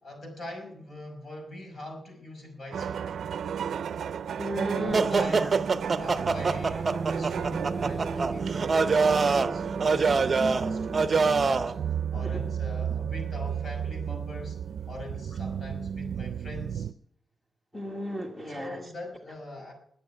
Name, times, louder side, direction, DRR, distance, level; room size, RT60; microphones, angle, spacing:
voice 1, 0.0-3.1 4.8-5.6 5.9-11.7 12.1-14.6 14.9-16.9 18.5-19.7, left 2 dB, 50° left, 2 dB, 5.7 m, -42 dB
sound 1, 2.7-16.9, right 8 dB, 85° right, 0.5 m, -33 dB
voice 2, 4.4-5.5 12.1-12.5 17.7-18.8, equal, 10° left, 1 dB, 1.7 m, -35 dB
sound 2, 4.9-11.7, right 4 dB, 40° right, 0.7 m, -25 dB
21.0 x 8.6 x 5.6 m, 0.68 s
wide cardioid pair, 135°, 0 cm